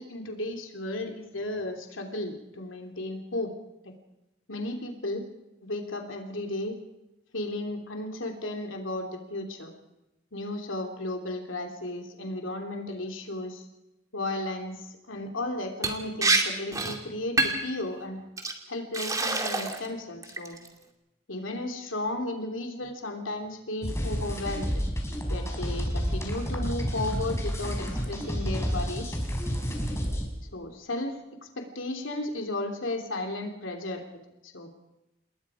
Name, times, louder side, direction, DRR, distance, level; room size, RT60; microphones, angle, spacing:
voice 1, 0.0-3.5 3.8-3.9 4.5-5.2 5.6-6.8 7.3-9.7 10.3-13.7 14.1-18.2 18.7-20.6 21.3-24.8 25.3-29.2 30.5-34.0 34.4-34.7, left 2 dB, 80° left, 4 dB, 3.2 m, -34 dB
Liquid, 15.8-16.4 16.7-17.0 17.4-17.7 18.4-18.5 18.9-19.9 20.2-20.7, right 3 dB, 15° right, 2.4 m, -26 dB
sound 1, 23.8-30.3, equal, 15° left, 4.4 m, -30 dB
28.5 x 21.0 x 5.1 m, 0.96 s
head